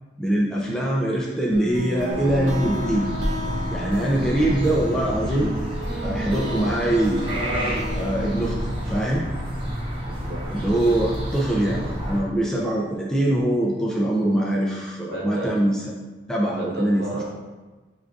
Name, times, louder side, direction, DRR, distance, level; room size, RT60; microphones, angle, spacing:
voice 1, 0.2-3.1 3.7-5.5 6.0-7.2 8.0-9.3 10.5-15.7 16.3-17.0, right 1 dB, 5° left, -4 dB, 0.3 m, -23 dB
sound 1, 1.5-9.1, equal, 75° right, 0.7 m, -32 dB
sound 2, 2.1-12.2, equal, 25° right, 0.8 m, -29 dB
voice 2, 10.0-10.4 15.1-15.5 16.6-17.2, right 1 dB, 55° right, -3 dB, 1.0 m, -33 dB
6.9 x 2.5 x 2.4 m, 1.2 s
head